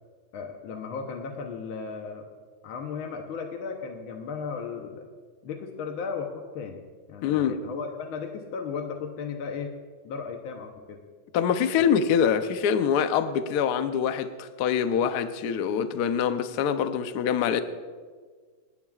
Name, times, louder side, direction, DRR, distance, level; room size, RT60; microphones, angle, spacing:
voice 1, 0.3-2.3 2.6-5.1 5.4-6.8 7.1-9.8 10.1-11.0, left 5 dB, 80° left, 1.8 m, -35 dB
voice 2, 7.2-7.6 11.3-17.6, left 7 dB, 65° left, 1.1 m, -25 dB
28.5 x 10.5 x 2.4 m
omnidirectional pair, 2.2 m